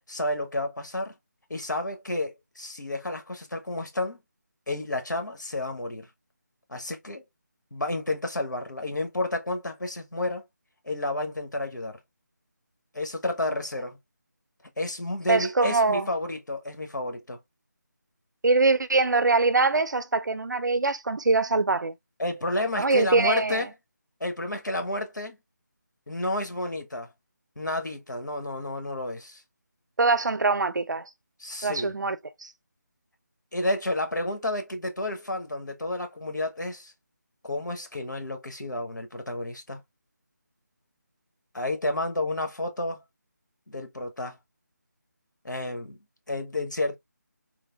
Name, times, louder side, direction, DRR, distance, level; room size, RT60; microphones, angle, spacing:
voice 1, 0.1-1.1 1.5-4.2 4.7-6.1 6.7-7.2 7.7-10.4 10.8-12.0 12.9-14.0 14.8-17.4 22.2-23.7 24.2-25.4 26.1-27.1 27.6-29.4 31.4-31.9 33.5-36.9 37.4-39.8 41.5-43.0 43.7-44.4 45.4-46.0 46.3-47.0, left 1 dB, 90° left, 1.0 m, -31 dB
voice 2, 15.3-16.1 18.4-21.9 22.8-23.6 30.0-31.0 31.6-32.5, right 3 dB, 80° right, 0.5 m, -23 dB
3.3 x 2.3 x 2.2 m
figure-of-eight pair, 165°, 10 cm